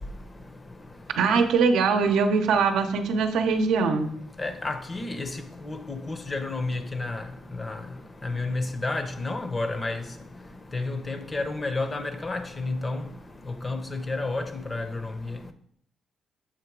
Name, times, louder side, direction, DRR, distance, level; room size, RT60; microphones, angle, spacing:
voice 1, 1.2-4.1, right 5 dB, 80° right, 0.7 m, -22 dB
voice 2, 4.4-5.4 5.7-7.2 7.6-7.8 8.2-10.0 10.7-13.0 13.6-14.9, left 2 dB, 25° left, 0.6 m, -30 dB
7.2 x 2.9 x 4.6 m
cardioid pair, 90°, 0 cm